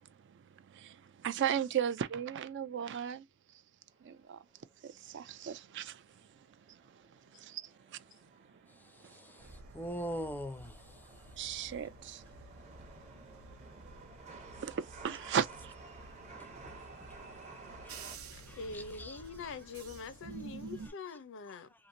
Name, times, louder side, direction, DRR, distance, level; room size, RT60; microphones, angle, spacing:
voice 1, 0.3-3.3 4.0-4.4 4.8-6.0 6.7-7.0 7.3-8.0 9.0-9.5 11.4-12.3 14.6-15.7 16.2-16.3, right 8 dB, 55° right, 0.4 m, -37 dB
Chatter / Subway metro underground, 3.9-18.2, right 4 dB, 35° right, 0.8 m, -54 dB
voice 2, 8.8-11.2 16.3-17.1 17.8-18.0 18.5-19.2, equal, 10° left, 0.4 m, -43 dB
sound 1, 9.4-20.9, right 3 dB, 75° right, 0.7 m, -51 dB
voice 3, 18.3-21.7, left 4 dB, 60° left, 0.5 m, -44 dB
2.9 x 2.5 x 2.6 m
head